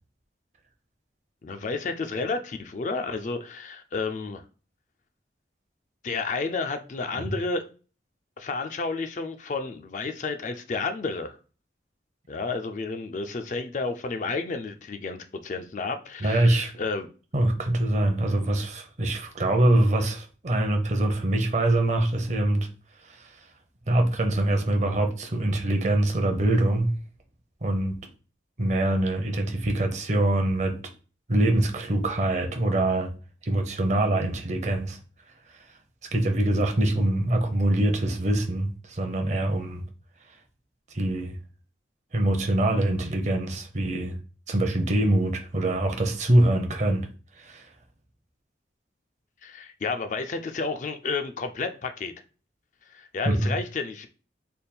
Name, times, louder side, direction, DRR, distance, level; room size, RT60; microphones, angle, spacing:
voice 1, 1.4-4.4 6.0-7.7 8.4-11.4 12.3-17.1 49.4-52.1 52.9-54.1, left 4 dB, 40° left, 0.3 m, -31 dB
voice 2, 16.2-16.7 17.3-22.7 23.0-23.3 23.9-26.9 27.6-28.0 28.6-30.8 31.3-33.1 33.4-35.0 36.1-39.8 40.9-41.4 42.1-44.2 44.5-47.1 47.4-47.7 53.3-53.5, right 1 dB, 40° right, 0.6 m, -24 dB
3.4 x 2.2 x 4.2 m
head